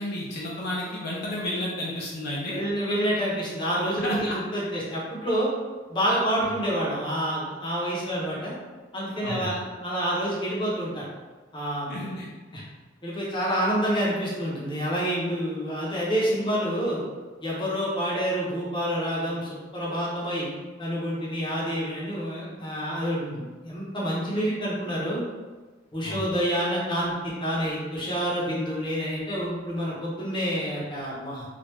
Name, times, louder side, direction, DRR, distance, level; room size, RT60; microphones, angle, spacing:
voice 1, 0.0-2.6 4.0-4.4 6.5-6.6 9.2-9.6 11.9-12.3 26.0-26.3, left 1 dB, 55° left, -5 dB, 0.6 m, -32 dB
voice 2, 2.5-5.5 5.9-8.5 8.9-11.0 11.5-12.0 12.5-12.6 13.0-17.0 17.4-20.5 20.8-25.2 25.9-31.4, equal, 25° left, -6 dB, 0.8 m, -28 dB
3.3 x 2.4 x 3.0 m, 1.3 s
head